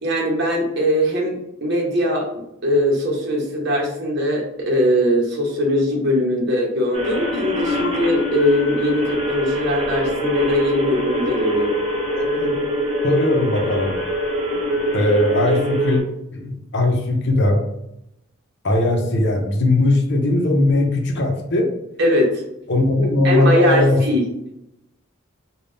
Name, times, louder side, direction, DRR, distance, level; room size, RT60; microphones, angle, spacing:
voice 1, 0.0-11.8 22.0-22.4 23.2-24.2, equal, 50° right, 0 dB, 0.9 m, -20 dB
sound 1, 6.9-16.0, equal, 25° right, 0.7 m, -24 dB
voice 2, 12.1-12.6 13.0-13.9 14.9-16.0 16.3-17.6 18.6-21.7 22.7-24.0, left 2 dB, 55° left, 1 dB, 0.6 m, -19 dB
3.5 x 2.3 x 3.9 m, 0.82 s
head